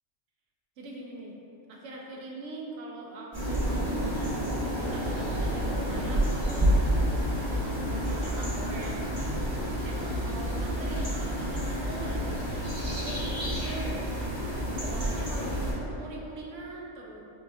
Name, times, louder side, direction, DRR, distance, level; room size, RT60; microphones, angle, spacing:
voice 1, 0.8-1.3 1.7-4.3 4.7-6.8 7.6-9.0 9.8-12.4 13.0-14.0 14.8-17.2, right 2 dB, 75° right, -2 dB, 0.9 m, -41 dB
sound 1, 3.3-15.7, equal, 20° right, 1.2 m, -29 dB
4.7 x 2.4 x 2.5 m, 2.8 s
omnidirectional pair, 1.3 m